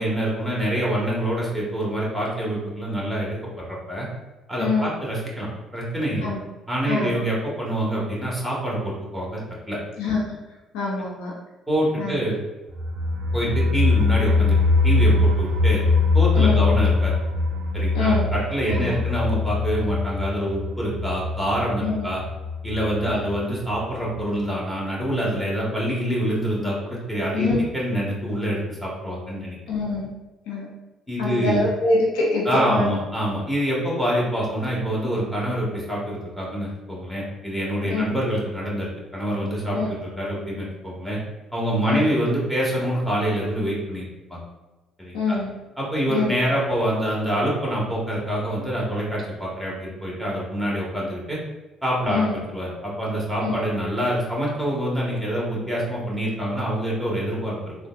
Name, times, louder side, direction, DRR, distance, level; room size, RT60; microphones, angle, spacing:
voice 1, 0.0-4.1 4.5-6.3 6.7-9.4 9.7-9.8 11.7-12.4 13.3-14.6 14.8-15.8 16.1-17.2 17.7-22.2 22.6-27.5 27.7-29.6 31.1-31.6 32.4-41.2 41.5-44.4 45.0-45.4 45.8-51.4 51.8-57.8, right 1 dB, 5° left, -5 dB, 1.5 m, -26 dB
voice 2, 4.6-4.9 6.2-6.4 6.9-7.1 10.0-10.4 10.7-11.3 12.0-12.2 16.3-16.6 17.9-18.9 21.8-22.1 23.1-23.2 27.3-27.6 29.7-30.1 30.5-30.7 31.2-32.9 37.8-38.1 39.7-39.9 41.8-42.1 45.1-45.5 46.1-46.4 52.1-52.4 53.4-53.6, left 3 dB, 80° left, -4 dB, 0.8 m, -25 dB
sound 1, 12.7-23.4 23.7-23.8 24.1-24.2, left 3 dB, 70° right, 0.3 m, -22 dB
3.6 x 2.2 x 2.5 m, 1.1 s
hypercardioid pair, 60°, 0 cm